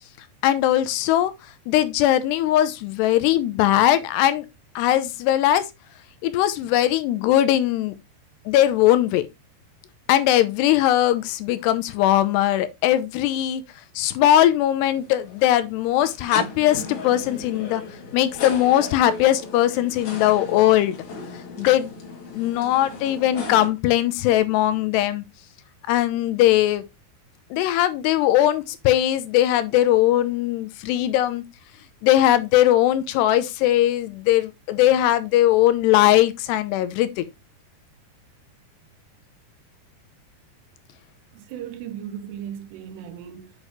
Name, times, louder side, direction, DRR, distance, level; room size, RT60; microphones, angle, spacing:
voice 1, 0.4-1.3 1.7-4.5 4.8-5.6 6.2-8.0 8.5-9.3 10.1-13.6 14.0-17.8 18.1-21.0 21.6-21.9 22.3-25.2 25.9-26.8 27.5-31.4 32.0-37.2, left 13 dB, 80° left, 2.7 m, -20 dB
sound 1, 14.8-23.7, left 4 dB, 50° left, 3.0 m, -36 dB
voice 2, 41.3-43.5, right 9 dB, 80° right, 2.7 m, -36 dB
8.2 x 6.4 x 3.0 m
omnidirectional pair, 5.0 m